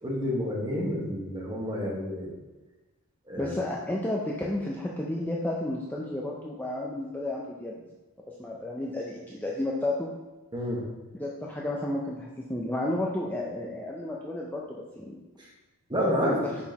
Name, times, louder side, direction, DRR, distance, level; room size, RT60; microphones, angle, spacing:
voice 1, 0.0-2.3 3.3-3.6 10.5-10.8 15.4-15.5 15.9-16.5, equal, 20° right, -3 dB, 1.4 m, -29 dB
voice 2, 3.4-7.8 8.4-10.1 11.2-15.2 16.2-16.3, left 1 dB, 10° left, -3 dB, 0.5 m, -32 dB
6.2 x 5.8 x 2.9 m, 1.2 s
head